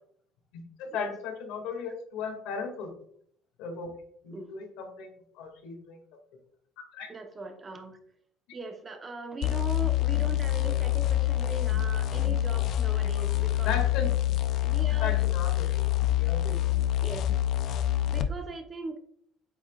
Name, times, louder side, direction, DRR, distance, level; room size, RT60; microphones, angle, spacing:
voice 1, 0.5-2.9 3.6-3.9 4.2-5.1 5.3-6.0 6.9-7.1 13.6-14.1 14.9-15.7 16.1-16.6, left 5 dB, 85° left, 2 dB, 2.3 m, -36 dB
voice 2, 7.1-8.0 8.5-13.7 14.6-15.2 16.2-16.3 17.0-17.3 18.1-19.0, right 2 dB, 25° right, 5 dB, 1.0 m, -39 dB
sound 1, 9.4-18.3, left 14 dB, 55° left, 0.5 m, -26 dB
8.4 x 6.1 x 2.4 m, 0.65 s
cardioid pair, 140°, 0 cm